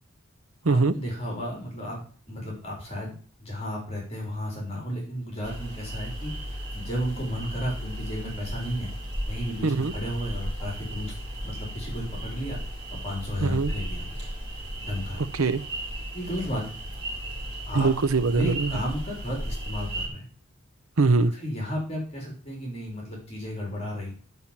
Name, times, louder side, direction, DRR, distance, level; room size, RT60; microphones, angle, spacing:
voice 1, 0.7-3.1 3.4-6.3 6.7-8.9 9.3-11.2 11.4-12.6 12.9-14.1 14.8-15.2 16.1-16.8 17.7-17.9 18.3-20.2 21.4-24.1, equal, 30° left, -2 dB, 3.9 m, -33 dB
sound 1, 5.4-20.1, right 1 dB, 20° right, 4.9 m, -35 dB
voice 2, 9.6-9.9 13.4-13.7 15.2-15.6 17.7-18.8 21.0-21.3, right 3 dB, 85° right, 13 dB, 0.8 m, -22 dB
11.0 x 5.7 x 7.4 m, 0.43 s
head